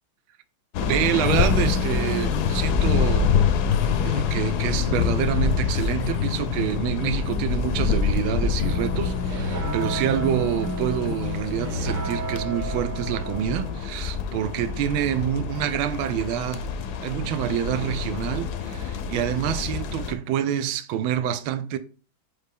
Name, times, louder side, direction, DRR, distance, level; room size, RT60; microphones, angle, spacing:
sound 1, 0.7-20.1, left 6 dB, 70° left, 1.0 m, -27 dB
voice 1, 0.8-3.4 4.0-16.7 17.0-21.8, right 10 dB, 90° right, 1.4 m, -27 dB
sound 2, 1.2-13.8, left 8 dB, 85° left, 1.7 m, -30 dB
sound 3, 8.6-13.7, right 3 dB, 45° right, 0.6 m, -34 dB
5.4 x 5.0 x 3.5 m
omnidirectional pair, 2.2 m